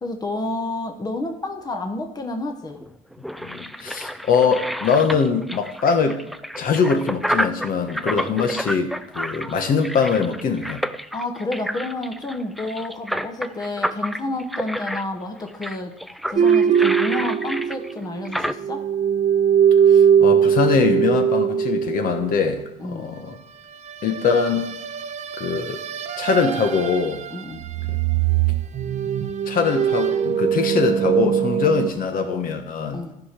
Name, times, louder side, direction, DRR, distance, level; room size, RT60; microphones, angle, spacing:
voice 1, 0.0-2.8 11.1-16.0 16.3-18.9 22.8-23.2 27.3-27.7 32.9-33.1, left 2 dB, 25° left, 4 dB, 1.1 m, -30 dB
sound 1, 2.8-18.5, equal, ahead, 0.4 m, -30 dB
voice 2, 3.4-6.2 6.6-10.8 19.8-23.4 24.0-24.7 25.4-25.8 26.2-27.2 27.9-28.0 29.5-33.0, left 5 dB, 55° left, 5 dB, 1.3 m, -22 dB
sound 2, 16.4-18.3 18.6-22.4 24.0-27.3 27.6-31.9, right 8 dB, 45° right, 0.8 m, -21 dB
13.5 x 5.1 x 6.0 m, 0.84 s
cardioid pair, 110°, 17 cm